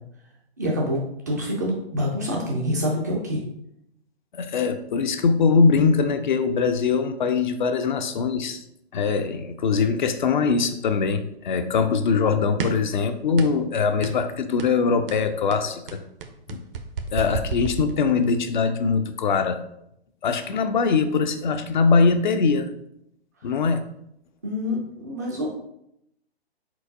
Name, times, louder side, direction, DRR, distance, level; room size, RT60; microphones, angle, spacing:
voice 1, 0.6-3.4 24.4-25.5, equal, 20° right, -2 dB, 0.3 m, -26 dB
voice 2, 4.3-8.6 8.9-16.0 16.5-16.6 17.1-19.6 20.2-22.7 23.4-23.8, left 5 dB, 50° left, 8 dB, 0.4 m, -22 dB
sound 1, 12.6-12.9 13.4-13.7 14.0-14.2 14.6-14.8 15.1-18.4, right 6 dB, 60° right, 0.6 m, -32 dB
4.5 x 3.8 x 2.6 m, 0.77 s
figure-of-eight pair, 130°, 32 cm